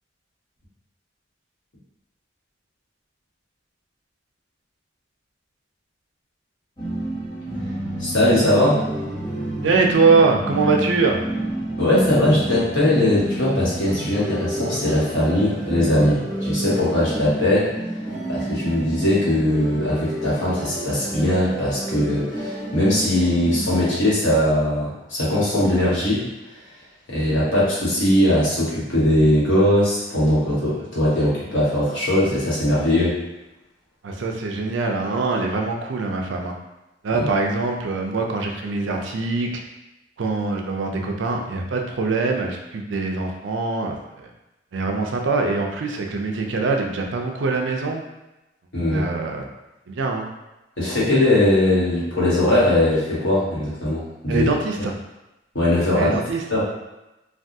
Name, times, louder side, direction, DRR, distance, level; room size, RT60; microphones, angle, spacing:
sound 1, 6.8-24.0, right 1 dB, 20° left, 0.9 m, -29 dB
voice 1, 8.0-8.8 11.8-17.7 18.3-26.3 27.1-33.2 37.1-37.2 48.7-49.1 50.8-54.5 55.5-56.2 56.5-56.6, left 1 dB, 85° left, -8 dB, 1.3 m, -20 dB
voice 2, 9.6-11.2 34.0-36.5 37.0-39.5 40.2-44.0 44.7-48.0 48.9-49.5 49.9-50.3 54.3-54.9 56.0-56.4, right 3 dB, 75° right, 2 dB, 0.4 m, -23 dB
3.3 x 2.3 x 2.7 m, 0.98 s
head